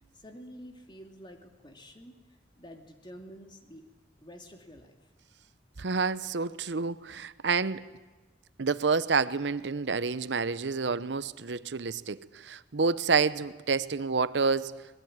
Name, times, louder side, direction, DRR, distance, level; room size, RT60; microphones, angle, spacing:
voice 1, 0.1-2.2 2.6-3.9 4.2-4.9, equal, 25° left, 2.6 m, -48 dB
voice 2, 5.8-7.8 8.6-14.7, right 4 dB, 80° right, 0.8 m, -28 dB
24.5 x 20.5 x 8.8 m
head